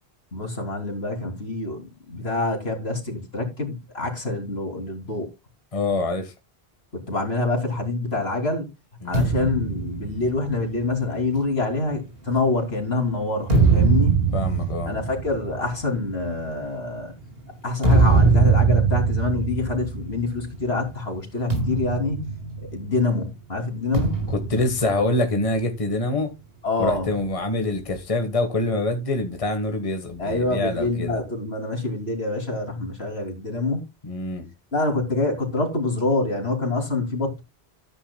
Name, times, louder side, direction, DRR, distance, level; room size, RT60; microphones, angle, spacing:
voice 1, 0.3-5.3 6.9-8.7 9.0-14.2 14.9-17.1 17.6-22.2 22.7-24.1 26.6-27.1 30.2-33.8 34.7-37.4, left 3 dB, 70° left, 3.3 m, -26 dB
voice 2, 5.7-6.3 9.0-9.3 14.3-14.9 24.3-26.3 26.8-31.2 34.0-34.5, left 2 dB, 30° left, 1.5 m, -25 dB
sound 1, 9.1-12.7 13.2-20.7 20.9-21.2 21.5-23.1 23.9-25.7, right 4 dB, 65° right, 4.6 m, -23 dB
13.0 x 9.9 x 2.3 m
omnidirectional pair, 1.1 m